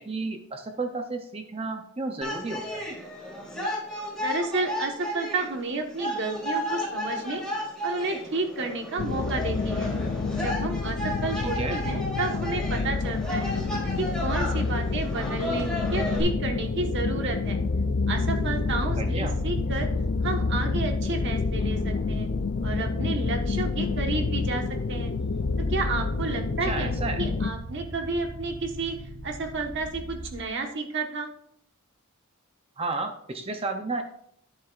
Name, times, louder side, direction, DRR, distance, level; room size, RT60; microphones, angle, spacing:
voice 1, 0.0-2.8 11.4-11.8 19.0-19.4 26.6-27.2 32.8-34.0, right 3 dB, 25° right, 6 dB, 0.6 m, -32 dB
sound 1, 2.2-16.2, left 1 dB, 5° left, 3.2 m, -33 dB
voice 2, 4.2-7.4 7.8-9.9 10.3-13.5 14.0-17.6 18.1-19.9 20.2-22.3 22.6-25.1 25.7-29.0 29.2-31.3, right 3 dB, 55° right, 3 dB, 1.3 m, -31 dB
sound 2, 9.0-27.5, left 4 dB, 50° left, 0.4 m, -28 dB
sound 3, 15.4-30.3, right 2 dB, 70° right, 3.9 m, -40 dB
11.5 x 9.7 x 2.5 m, 0.67 s
head